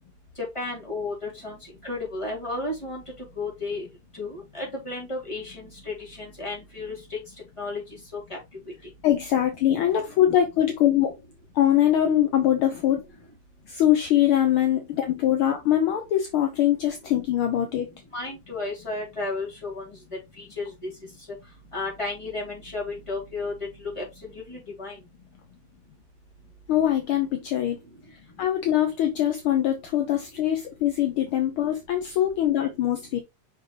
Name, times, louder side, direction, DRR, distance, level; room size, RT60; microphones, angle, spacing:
voice 1, 0.5-1.6 1.8-3.0 3.4-3.9 4.2-7.2 7.6-7.8 8.3-8.4 18.1-19.8 20.4-20.9 21.7-23.5 23.8-25.0, left 2 dB, 10° left, 3.0 m, -33 dB
voice 2, 9.0-11.2 11.5-13.0 13.7-17.9 26.7-27.8 28.4-33.2, left 11 dB, 70° left, 1.3 m, -23 dB
5.8 x 5.4 x 3.2 m
omnidirectional pair, 3.3 m